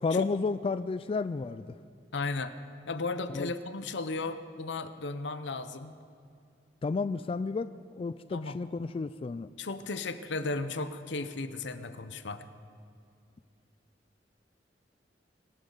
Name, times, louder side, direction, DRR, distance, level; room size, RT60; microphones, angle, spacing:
voice 1, 0.0-1.7 3.3-3.5 6.8-7.7 8.0-9.5, left 4 dB, 30° left, 13 dB, 0.3 m, -31 dB
voice 2, 2.1-2.5 2.9-5.9 8.3-8.6 9.6-12.5, left 3 dB, 85° left, 11 dB, 0.8 m, -35 dB
24.5 x 12.5 x 4.0 m, 2.4 s
head